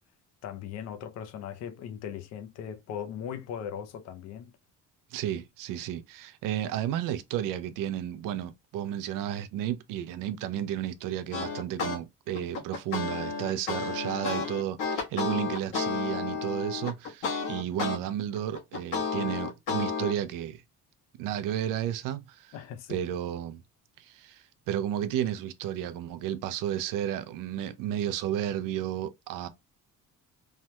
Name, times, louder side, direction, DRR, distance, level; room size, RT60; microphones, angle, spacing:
voice 1, 0.4-4.5 22.5-23.0, left 8 dB, 55° left, 0.5 m, -39 dB
voice 2, 5.1-20.6 21.2-22.5 22.9-23.6 24.0-29.5, right 11 dB, 80° right, 0.5 m, -32 dB
sound 1, 11.3-12.0 12.3-18.0 18.3-20.1, left 5 dB, 70° left, 1.3 m, -31 dB
3.2 x 2.1 x 2.8 m
cardioid pair, 170°, 32 cm